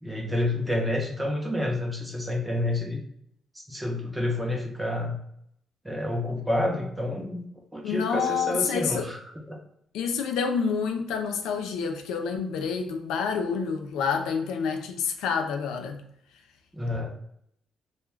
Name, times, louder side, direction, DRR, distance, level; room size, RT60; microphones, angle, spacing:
voice 1, 0.0-3.0 3.5-5.2 5.8-7.5 7.7-9.2 9.5-9.6 16.7-17.1, left 1 dB, 5° right, 1 dB, 0.7 m, -29 dB
voice 2, 7.8-9.1 9.9-16.0, left 6 dB, 90° left, 5 dB, 0.4 m, -28 dB
2.2 x 2.2 x 3.1 m, 0.72 s
cardioid pair, 90°, 0 cm